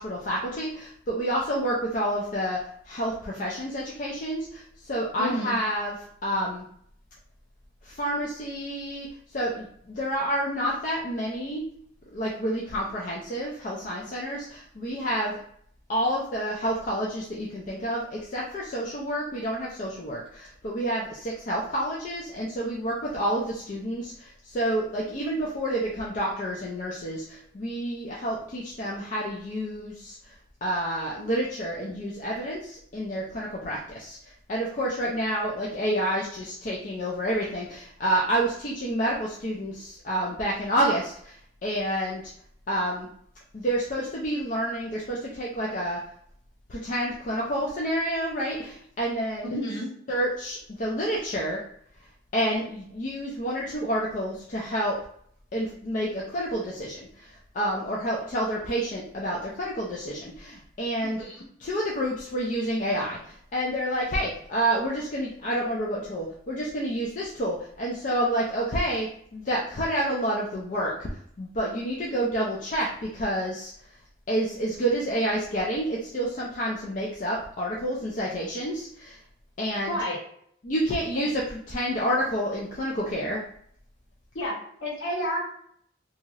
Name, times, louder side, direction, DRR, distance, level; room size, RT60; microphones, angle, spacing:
voice 1, 0.0-5.9 6.2-6.6 7.8-11.7 12.1-15.4 15.9-30.3 30.6-42.2 42.7-43.1 43.5-46.0 46.7-49.5 50.1-51.6 52.3-55.0 55.5-61.3 61.6-71.1 71.4-73.7 74.3-79.2 79.6-80.0 80.6-83.4, right 1 dB, 40° left, -3 dB, 0.4 m, -29 dB
voice 2, 5.2-5.6 49.5-49.9 61.2-61.4 79.9-80.2 81.1-81.3 84.3-85.4, equal, 60° left, -5 dB, 1.2 m, -30 dB
2.7 x 2.4 x 2.9 m, 0.65 s
head